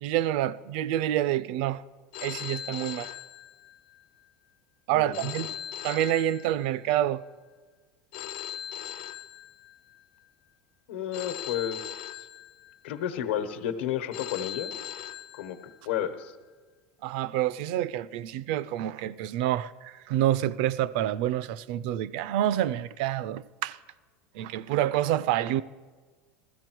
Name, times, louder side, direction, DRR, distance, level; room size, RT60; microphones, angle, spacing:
voice 1, 0.0-1.8 2.2-3.1 4.9-5.5 5.8-7.2 17.0-23.8 24.3-25.6, right 12 dB, 55° right, 0.4 m, -27 dB
Telephone, 2.1-4.0 5.1-7.0 8.1-10.0 11.1-13.0 14.1-16.0, left 11 dB, 55° left, 0.5 m, -40 dB
voice 2, 4.9-5.3 10.9-11.9 12.8-14.7 15.3-15.6 15.8-16.3, left 10 dB, 80° left, 1.1 m, -31 dB
16.0 x 14.0 x 4.6 m
supercardioid pair, 165°, 6 cm